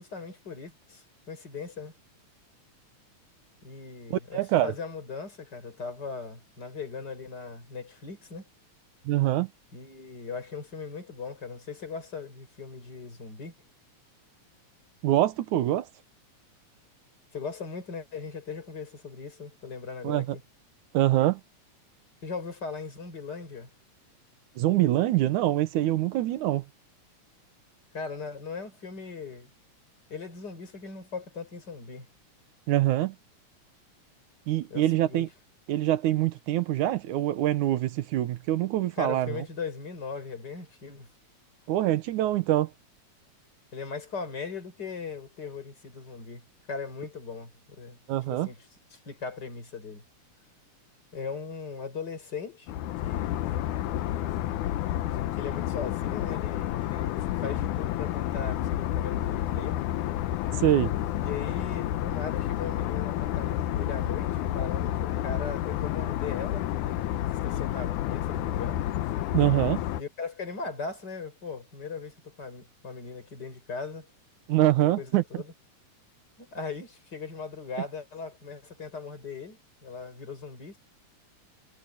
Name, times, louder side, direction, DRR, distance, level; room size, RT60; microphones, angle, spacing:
voice 1, 0.0-1.9 3.6-8.4 9.7-13.5 17.3-20.4 22.2-23.7 27.9-29.5 30.1-32.1 34.7-35.2 38.9-41.1 43.7-48.0 48.3-48.7 48.9-50.0 51.1-52.7 53.0-53.5 55.3-59.8 61.2-67.2 67.4-68.8 70.0-74.1 74.8-75.5 76.4-80.8, left 5 dB, 30° left, 5.6 m, -39 dB
voice 2, 4.1-4.7 9.1-9.5 15.0-15.9 20.0-20.4 20.9-21.4 24.6-26.6 32.7-33.2 34.5-35.3 35.7-39.4 41.7-42.7 48.1-48.5 60.6-60.9 69.3-69.8 74.5-75.2, right 14 dB, 80° right, 2.4 m, -24 dB
sound 1, 52.7-70.0, left 13 dB, 80° left, 2.3 m, -30 dB
omnidirectional pair, 3.5 m